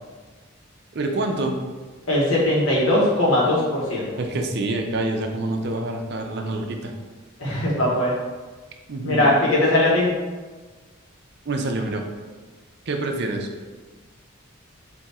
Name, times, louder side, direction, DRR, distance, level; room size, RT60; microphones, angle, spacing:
voice 1, 0.9-1.6 4.2-6.9 8.9-9.4 11.5-12.1 12.9-13.5, right 2 dB, 50° right, 3 dB, 0.5 m, -26 dB
voice 2, 2.1-4.2 7.4-8.1 9.0-10.1, left 1 dB, 85° left, -6 dB, 1.3 m, -20 dB
3.5 x 2.7 x 4.1 m, 1.3 s
head